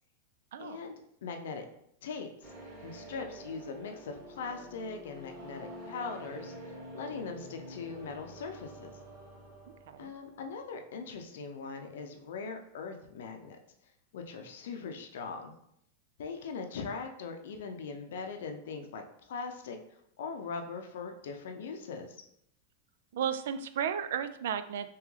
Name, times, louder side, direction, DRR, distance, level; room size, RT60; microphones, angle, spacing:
voice 1, 0.6-0.9 1.2-1.7 2.0-2.5 2.8-8.9 10.0-13.6 14.1-15.5 16.2-19.8 20.2-22.2, left 5 dB, 80° left, 5 dB, 0.6 m, -40 dB
sound 1, 2.4-10.3, right 1 dB, 35° right, 1.2 m, -48 dB
voice 2, 23.1-24.9, right 8 dB, 75° right, 11 dB, 0.3 m, -33 dB
3.5 x 3.0 x 3.2 m, 0.73 s
supercardioid pair, 165°, 0 cm